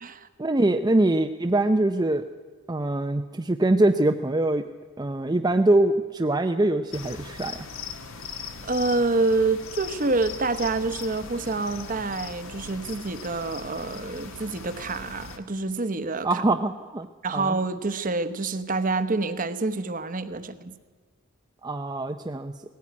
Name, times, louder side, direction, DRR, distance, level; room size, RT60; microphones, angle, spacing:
voice 1, 0.4-2.3 2.7-4.6 5.0-7.6 16.2-17.1 17.3-17.6 21.6-22.5, right 2 dB, 20° right, 5 dB, 0.5 m, -23 dB
sound 1, 6.9-15.4, left 5 dB, 65° left, 1.7 m, -40 dB
voice 2, 8.6-16.4 17.2-20.7, right 3 dB, 40° right, 11 dB, 1.0 m, -27 dB
18.0 x 16.0 x 9.5 m, 1.4 s
head